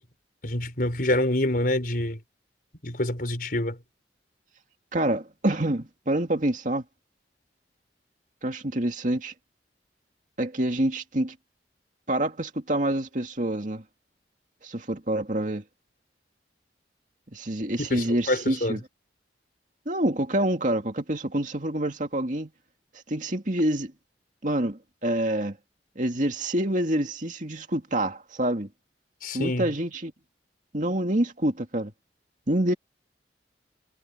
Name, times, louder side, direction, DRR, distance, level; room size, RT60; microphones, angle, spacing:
voice 1, 0.4-2.2 2.8-3.8 17.8-18.8 29.2-29.7, left 1 dB, 55° left, 5.4 m, -26 dB
voice 2, 4.9-6.8 8.4-9.3 10.4-11.4 12.1-13.8 14.6-15.6 17.3-18.8 19.9-22.5 23.1-23.9 24.4-25.6 26.0-28.7 29.3-30.1 30.7-31.9 32.5-32.7, right 1 dB, 45° right, 2.4 m, -27 dB
head